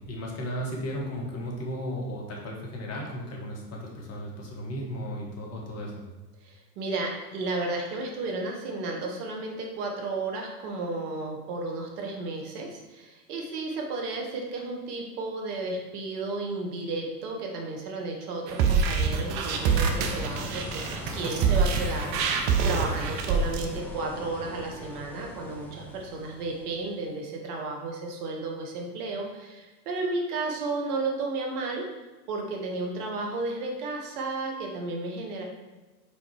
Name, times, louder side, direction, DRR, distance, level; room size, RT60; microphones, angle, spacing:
voice 1, 0.1-6.0, equal, 30° left, -1 dB, 1.8 m, -35 dB
voice 2, 6.4-31.8 32.3-35.4, right 3 dB, 65° right, 1 dB, 1.7 m, -33 dB
sound 1, 18.5-23.7, right 5 dB, 25° right, 0.3 m, -25 dB
sound 2, 19.5-27.0, equal, 5° left, 0.9 m, -39 dB
5.1 x 4.4 x 4.7 m, 1.2 s
hypercardioid pair, 110°, 49 cm